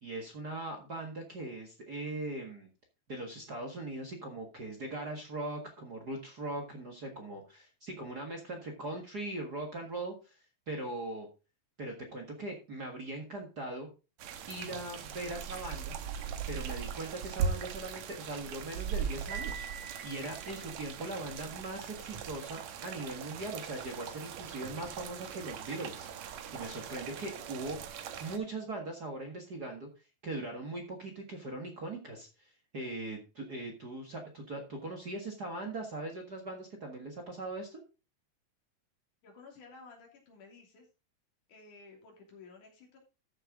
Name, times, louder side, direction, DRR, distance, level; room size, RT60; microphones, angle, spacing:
voice 1, 0.0-2.7 3.1-10.4 10.7-11.3 11.8-13.9 14.5-16.0 16.5-19.7 20.0-27.8 28.2-29.9 30.2-37.8, right 2 dB, 40° right, 2 dB, 1.7 m, -40 dB
sound 1, 14.2-28.4, right 7 dB, 65° right, 2.1 m, -40 dB
Piano, 19.3-21.2, right 7 dB, 90° right, 4.2 m, -45 dB
voice 2, 39.2-40.9 41.5-43.0, left 4 dB, 70° left, 1 dB, 4.4 m, -54 dB
13.5 x 6.8 x 3.7 m, 0.30 s
omnidirectional pair, 3.7 m